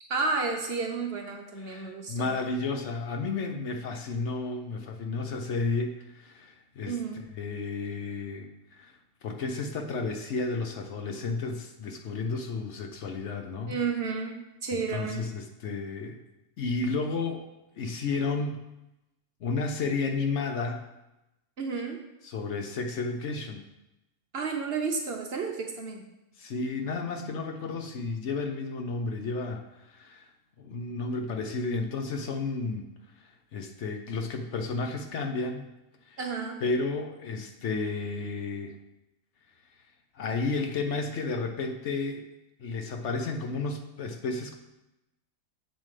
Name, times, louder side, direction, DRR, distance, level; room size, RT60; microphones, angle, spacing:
voice 1, 0.1-2.3 6.9-7.2 13.7-15.2 21.6-22.0 24.3-26.0 36.2-36.6, right 4 dB, 50° right, 2 dB, 0.9 m, -31 dB
voice 2, 1.6-13.8 14.7-16.2 16.6-17.5 17.8-18.6 19.4-20.9 22.2-23.6 26.4-30.3 30.6-32.9 33.2-35.6 36.1-36.2 36.6-38.8 40.1-42.3 42.6-44.5, left 3 dB, 60° left, 5 dB, 0.9 m, -32 dB
7.4 x 7.4 x 3.3 m, 0.94 s
omnidirectional pair, 1.5 m